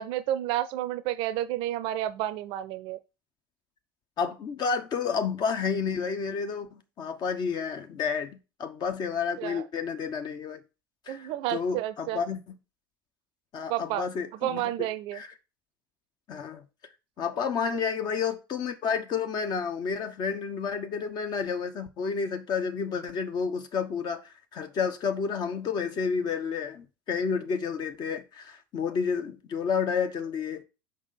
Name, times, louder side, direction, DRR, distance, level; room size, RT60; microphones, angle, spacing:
voice 1, 0.0-3.0 9.4-9.7 11.1-12.2 13.7-14.1 14.3-15.2 17.7-17.8, right 13 dB, 55° right, 0.6 m, -31 dB
voice 2, 4.2-8.3 8.6-10.6 11.1-11.2 11.5-12.4 13.5-14.6 16.3-16.6 17.2-30.6, left 6 dB, 40° left, 1.1 m, -30 dB
6.2 x 5.3 x 4.2 m
figure-of-eight pair, 70°, 11 cm